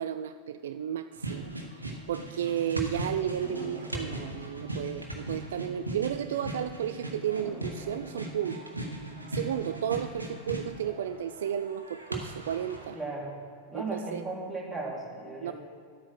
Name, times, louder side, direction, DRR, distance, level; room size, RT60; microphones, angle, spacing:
voice 1, 0.0-1.5 2.1-8.7 9.3-13.0 13.7-14.2 15.4-15.5, right 9 dB, 60° right, 11 dB, 0.3 m, -33 dB
sound 1, 1.1-13.0, right 1 dB, 85° right, 1.3 m, -39 dB
sound 2, 3.4-6.5 6.8-6.9 7.4-10.3 10.7-11.3, left 1 dB, 20° left, 1.6 m, -50 dB
voice 2, 12.9-13.4 13.7-15.5, right 2 dB, 5° right, -5 dB, 3.1 m, -36 dB
11.0 x 8.4 x 5.9 m, 2.2 s
figure-of-eight pair, 90°, 0 cm